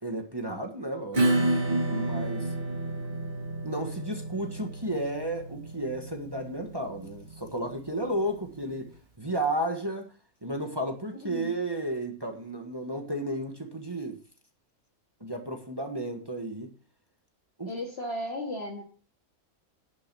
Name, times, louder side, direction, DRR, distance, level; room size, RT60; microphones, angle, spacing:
voice 1, 0.0-2.6 3.6-8.9 9.2-10.1 10.4-14.2 15.2-16.7 17.6-17.7, right 1 dB, 20° right, 1.4 m, -33 dB
Acoustic guitar / Strum, 1.1-8.4, right 2 dB, 35° right, 2.2 m, -30 dB
voice 2, 11.2-11.6 17.7-18.8, left 1 dB, 45° left, 2.0 m, -35 dB
11.0 x 6.9 x 6.0 m
omnidirectional pair, 1.5 m